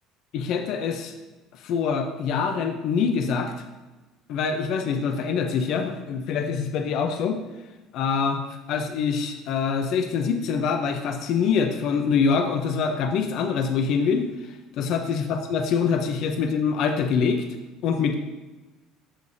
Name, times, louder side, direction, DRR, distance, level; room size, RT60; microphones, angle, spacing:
voice 1, 0.3-1.1 1.6-3.6 4.3-7.4 7.9-8.4 8.7-14.3 14.8-17.4 17.8-18.1, left 6 dB, 55° left, 5 dB, 0.7 m, -24 dB
13.5 x 4.9 x 2.7 m, 1.1 s
cardioid pair, 155°, 0 cm